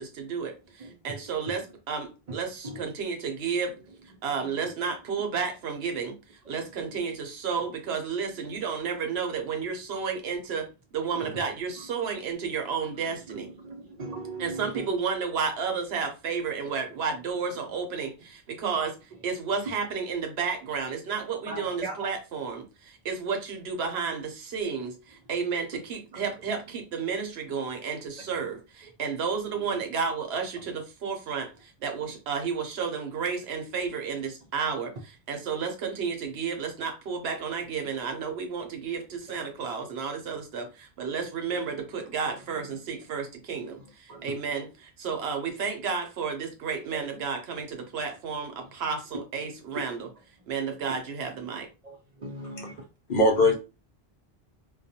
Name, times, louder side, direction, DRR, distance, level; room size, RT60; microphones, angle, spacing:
voice 1, 0.0-3.7 4.2-13.5 14.4-50.1 50.5-51.7, right 5 dB, 80° right, 0.9 m, -32 dB
voice 2, 13.3-14.8 21.5-22.1 35.3-35.4 44.1-44.3 46.9-47.1 51.8-52.7 53.4-53.5, right 2 dB, 50° right, 0.5 m, -38 dB
voice 3, 53.1-53.5, left 1 dB, 60° left, 0.7 m, -21 dB
2.3 x 2.1 x 2.7 m
omnidirectional pair, 1.0 m